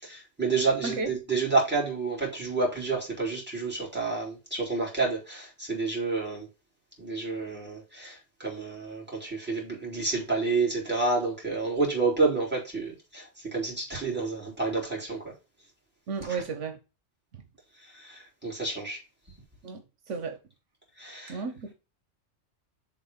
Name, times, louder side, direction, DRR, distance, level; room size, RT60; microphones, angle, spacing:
voice 1, 0.0-6.5 7.0-15.3 16.3-16.4 17.8-19.0 21.0-21.4, right 3 dB, 10° right, 3.2 m, -29 dB
voice 2, 0.8-1.1 16.1-16.8 19.6-19.8 20.1-20.4 21.3-21.7, right 4 dB, 80° right, 1.3 m, -33 dB
6.6 x 3.7 x 5.4 m
omnidirectional pair, 1.2 m